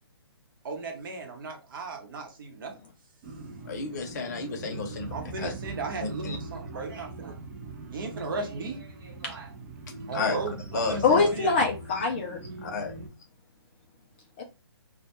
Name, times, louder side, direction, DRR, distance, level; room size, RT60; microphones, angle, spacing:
voice 1, 0.6-2.7 4.3-4.4 5.1-7.4 7.9-9.5 10.1-11.5, right 3 dB, 55° right, 0.9 m, -36 dB
sound 1, 3.2-13.1, right 2 dB, 35° right, 0.5 m, -41 dB
voice 2, 3.7-5.1 5.4-5.5 6.0-6.4 10.1-10.4 10.7-11.3 12.6-12.9, left 4 dB, 40° left, 0.7 m, -32 dB
voice 3, 11.0-12.4 14.4-14.5, left 4 dB, 25° left, 0.3 m, -24 dB
2.2 x 2.2 x 2.8 m
hypercardioid pair, 145°, 14 cm